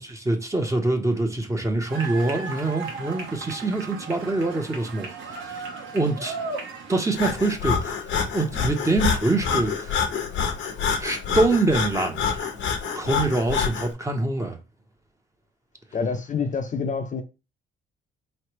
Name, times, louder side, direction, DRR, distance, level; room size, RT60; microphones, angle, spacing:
voice 1, 0.0-5.5 5.9-6.3 6.9-8.0 8.3-10.0 11.0-12.5 12.9-14.6, right 2 dB, 15° right, 0.9 m, -25 dB
sound 1, 1.9-7.1, right 4 dB, 75° right, 1.2 m, -35 dB
Breathing, 7.1-13.9, left 6 dB, 75° left, 0.9 m, -27 dB
voice 2, 15.9-17.2, left 5 dB, 40° left, 0.6 m, -27 dB
4.1 x 3.2 x 3.1 m
cardioid pair, 90°, 20 cm